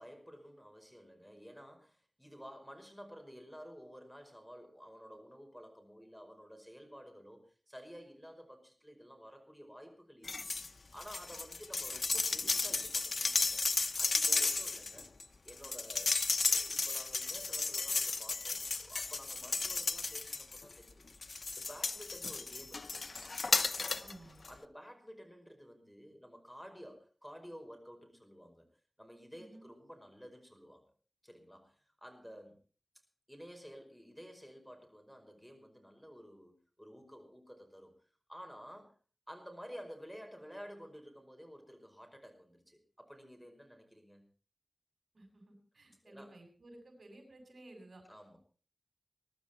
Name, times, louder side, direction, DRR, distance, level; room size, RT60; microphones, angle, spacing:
voice 1, 0.0-7.4 7.7-10.5 10.9-13.7 14.0-15.1 15.4-16.1 16.5-21.0 21.6-23.4 23.7-24.1 24.4-28.7 29.0-30.8 31.2-32.6 33.3-37.9 38.3-38.9 39.3-44.2 46.0-46.4 48.1-48.4, equal, ahead, 4 dB, 5.3 m, -52 dB
sound 1, 10.2-10.7 11.0-20.7 21.2-24.1 24.4-24.5, left 3 dB, 70° left, 0.9 m, -34 dB
voice 2, 24.0-24.4 29.4-29.7 45.1-48.0, right 1 dB, 70° right, 3 dB, 7.1 m, -55 dB
22.0 x 12.5 x 4.5 m, 0.39 s
wide cardioid pair, 85°, 0 cm